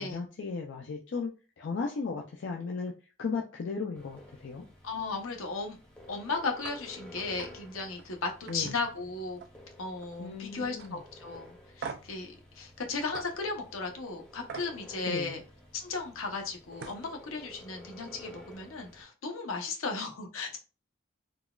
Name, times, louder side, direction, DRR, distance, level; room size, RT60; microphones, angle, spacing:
voice 1, 0.0-2.9 3.2-4.6 8.5-8.8 10.2-11.0 15.0-15.4, left 4 dB, 55° left, 0 dB, 0.4 m, -36 dB
sound 1, 3.9-19.0, left 1 dB, 5° left, 0.7 m, -52 dB
voice 2, 4.8-5.8 6.1-9.4 9.8-15.4 15.7-20.6, left 4 dB, 80° left, 3 dB, 0.8 m, -36 dB
sound 2, 6.6-6.8 7.2-7.5 7.9-8.1 8.5-9.6 9.9-10.3 10.8-10.9 11.8-12.2 13.1-13.3 14.5-14.7 16.4-16.5 16.8-17.1, right 5 dB, 55° right, 0.3 m, -42 dB
3.8 x 2.3 x 2.3 m, 0.33 s
head